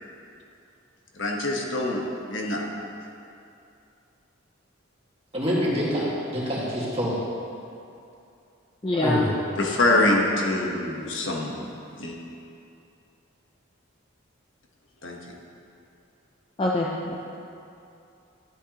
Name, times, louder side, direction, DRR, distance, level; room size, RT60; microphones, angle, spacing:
voice 1, 1.2-2.0 2.3-2.6 9.6-11.7 12.0-12.2 15.0-15.2, left 2 dB, 65° left, -1 dB, 1.1 m, -24 dB
voice 2, 5.3-7.2 9.0-9.3, equal, 30° right, -6 dB, 1.8 m, -26 dB
voice 3, 8.8-9.2 16.6-17.2, left 2 dB, 25° left, -3 dB, 0.5 m, -24 dB
12.0 x 8.5 x 2.9 m, 2.7 s
head